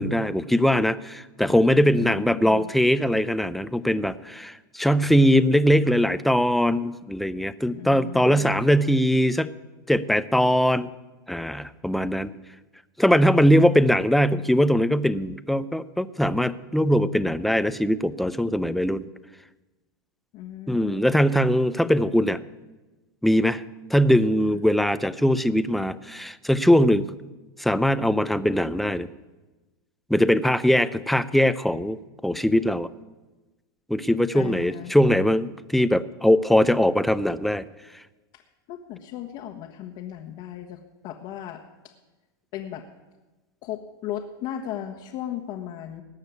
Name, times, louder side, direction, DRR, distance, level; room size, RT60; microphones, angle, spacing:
voice 1, 0.0-9.5 9.9-10.9 11.3-12.3 13.0-19.1 20.7-22.4 23.2-23.6 23.9-27.1 27.6-29.1 30.1-32.9 33.9-37.7, equal, ahead, 15 dB, 0.5 m, -21 dB
voice 2, 1.7-2.7 7.7-8.5 20.3-21.3 24.5-24.6 34.3-34.9 38.7-40.8 41.0-41.9 42.5-42.8 43.6-46.0, left 11 dB, 50° left, 2 dB, 1.3 m, -36 dB
18.5 x 6.6 x 8.3 m, 1.1 s
hypercardioid pair, 115°, 12 cm